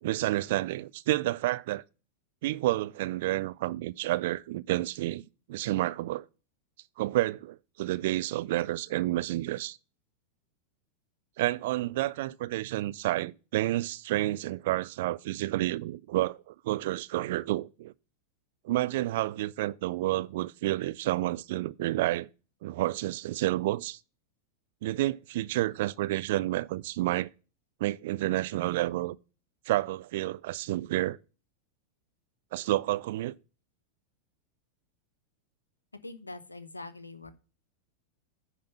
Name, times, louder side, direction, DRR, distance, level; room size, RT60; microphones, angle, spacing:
voice 1, 0.0-1.8 2.4-5.2 5.5-6.3 7.0-9.8 11.4-17.9 18.6-22.3 22.6-24.0 24.8-27.3 27.8-29.2 29.7-31.2 32.5-33.3, right 16 dB, 55° right, 0.4 m, -30 dB
voice 2, 36.0-37.3, left 2 dB, 80° left, 0.9 m, -43 dB
10.0 x 3.7 x 6.9 m
figure-of-eight pair, 90°, 0 cm